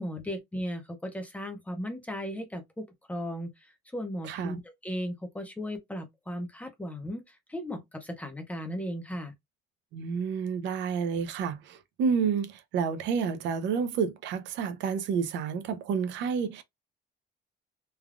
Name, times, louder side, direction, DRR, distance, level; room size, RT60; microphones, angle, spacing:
voice 1, 0.0-9.3, equal, 5° left, 0.5 m, -36 dB
voice 2, 4.2-4.6 9.9-16.6, right 6 dB, 70° right, 0.5 m, -30 dB
3.2 x 2.2 x 2.4 m
cardioid pair, 170°, 19 cm